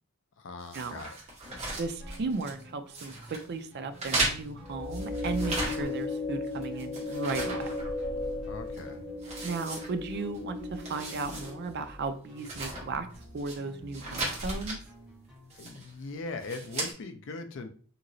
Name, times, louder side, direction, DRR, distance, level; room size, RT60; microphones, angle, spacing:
voice 1, 0.4-1.2 8.5-9.0 15.5-17.7, left 3 dB, 55° left, 7 dB, 0.4 m, -40 dB
sound 1, 0.7-2.6 2.9-3.4 4.0-6.1 6.4-8.4 8.7-8.8 9.2-10.4 10.7-11.5 11.8-11.9 12.4-13.6 13.9-14.8 15.5-15.9 16.4-16.9, right 2 dB, 30° right, 1.0 m, -36 dB
voice 2, 1.7-7.7 9.4-13.1 13.3-14.8, right 4 dB, 50° right, 9 dB, 0.4 m, -35 dB
sound 2, 2.0-15.7, equal, 5° right, 0.7 m, -52 dB
sound 3, 4.6-12.0, left 2 dB, 85° left, 0.8 m, -36 dB
3.0 x 2.8 x 2.6 m, 0.43 s
head